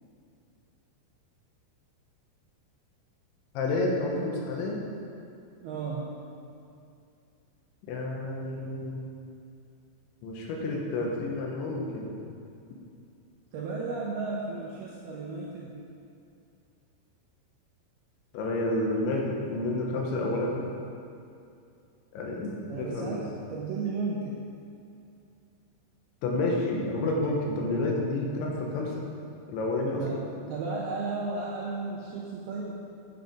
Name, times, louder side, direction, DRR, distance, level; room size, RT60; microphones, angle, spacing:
voice 1, 3.5-4.8 7.9-9.0 10.2-12.1 18.3-20.7 22.1-23.2 26.2-29.0 29.5-30.0, left 2 dB, 75° left, -1 dB, 3.3 m, -30 dB
voice 2, 5.6-6.1 13.5-15.7 22.7-24.4 29.9-30.2 30.5-32.8, right 3 dB, 75° right, -4 dB, 2.4 m, -34 dB
9.4 x 7.4 x 5.2 m, 2.5 s
omnidirectional pair, 5.6 m